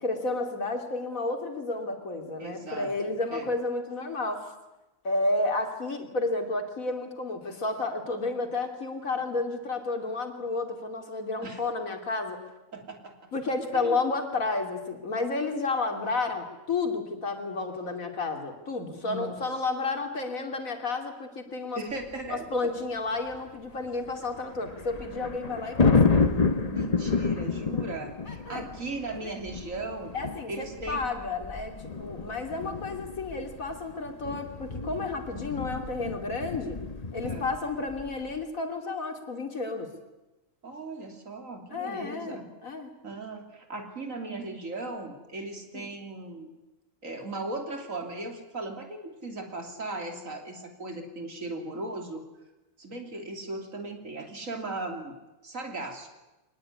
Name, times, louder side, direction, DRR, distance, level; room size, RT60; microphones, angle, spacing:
voice 1, 0.0-4.5 5.0-12.4 13.3-21.8 22.3-26.0 28.3-28.7 29.2-29.4 30.1-36.8 37.1-39.9 41.7-42.9 45.7-45.9, left 3 dB, 85° left, 5 dB, 3.2 m, -31 dB
voice 2, 2.4-2.9 3.3-3.5 11.4-11.6 12.7-13.2 13.7-14.0 19.0-19.4 21.8-22.5 26.6-30.1 30.5-31.1 37.2-37.5 40.6-42.4 43.0-46.5 47.0-52.2 52.8-55.1 55.4-56.1, right 2 dB, 75° right, 4 dB, 3.4 m, -37 dB
sound 1, 22.0-22.3 23.3-23.4 23.9-38.4, left 4 dB, 30° left, 1.3 m, -30 dB
23.0 x 19.5 x 9.6 m, 1.0 s
omnidirectional pair, 1.4 m